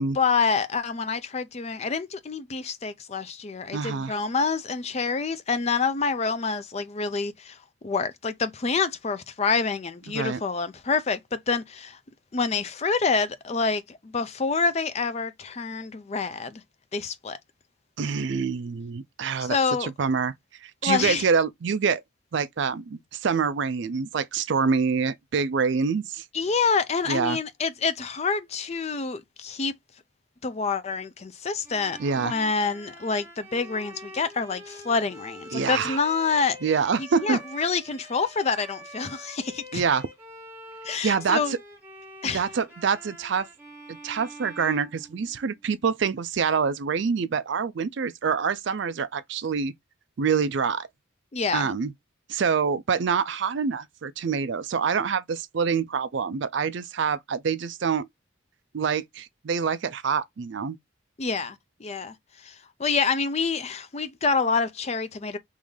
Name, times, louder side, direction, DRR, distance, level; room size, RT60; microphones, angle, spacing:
voice 1, 0.1-7.6 7.8-12.0 12.3-16.6 16.9-17.4 19.4-19.9 20.8-21.2 26.3-29.7 30.4-36.6 37.0-39.8 40.8-41.5 42.2-42.4 51.3-51.7 61.2-62.1 62.4-62.5 62.8-65.4, left 4 dB, 30° left, 0.4 m, -27 dB
voice 2, 3.7-4.1 10.1-10.4 18.0-20.3 20.6-22.0 22.3-26.2 27.1-27.4 32.0-32.4 35.5-36.0 36.6-37.4 39.7-40.1 41.0-41.6 42.2-43.5 43.9-49.7 50.2-50.9 51.5-51.9 52.3-58.1 58.7-60.8, right 5 dB, 55° right, 0.4 m, -26 dB
Bowed string instrument, 31.6-45.7, equal, 10° right, 1.4 m, -45 dB
3.7 x 2.6 x 3.1 m
head